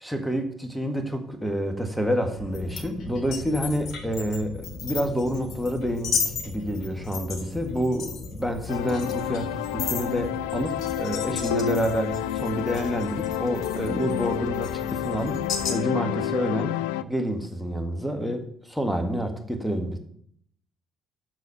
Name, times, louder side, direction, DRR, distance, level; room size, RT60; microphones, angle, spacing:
voice 1, 0.0-15.4 15.7-20.0, equal, ahead, 5 dB, 1.7 m, -28 dB
sound 1, 2.4-15.7, left 5 dB, 55° left, 1.4 m, -35 dB
sound 2, 8.7-17.0, left 11 dB, 70° left, 0.3 m, -29 dB
8.1 x 6.5 x 5.7 m, 0.65 s
figure-of-eight pair, 50°, 0 cm